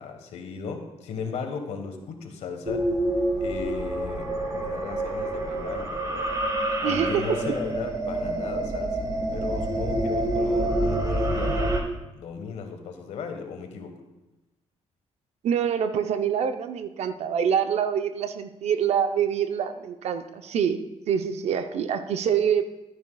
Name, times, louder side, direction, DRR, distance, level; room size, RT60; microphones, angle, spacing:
voice 1, 0.0-2.8 3.4-6.3 6.8-11.8 12.2-14.0, left 5 dB, 85° left, 5 dB, 1.4 m, -36 dB
sound 1, 2.6-11.8, right 1 dB, 35° right, 1.6 m, -27 dB
voice 2, 6.8-7.5 15.4-22.6, right 8 dB, 75° right, 9 dB, 0.7 m, -25 dB
13.0 x 9.4 x 2.3 m, 1.0 s
cardioid pair, 100°, 11 cm